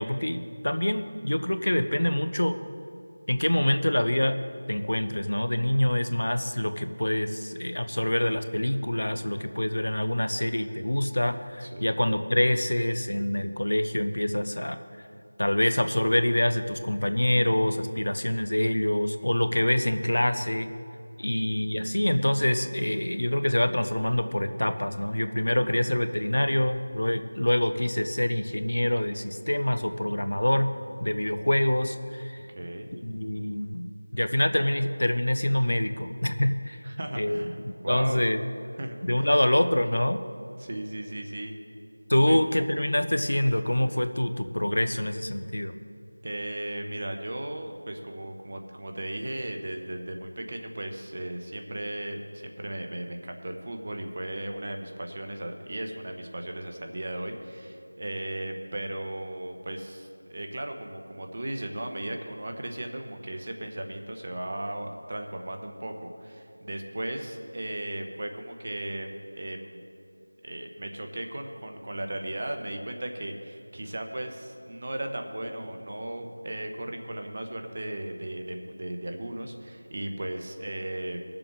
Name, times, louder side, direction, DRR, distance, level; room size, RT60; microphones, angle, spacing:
voice 1, 0.0-2.6 3.3-4.4 4.7-14.8 15.4-20.7 21.2-30.7 31.0-32.4 32.9-33.9 34.1-36.8 37.1-38.4 39.0-40.2 42.1-45.8, left 1 dB, 75° left, 9 dB, 0.7 m, -26 dB
voice 2, 11.6-12.0 21.2-21.6 32.5-32.9 36.8-38.3 38.8-39.3 40.6-41.6 42.1-42.4 46.2-69.8 70.4-81.2, right 1 dB, 40° right, 4 dB, 0.9 m, -36 dB
20.0 x 7.0 x 3.6 m, 2.5 s
figure-of-eight pair, 175°, 0 cm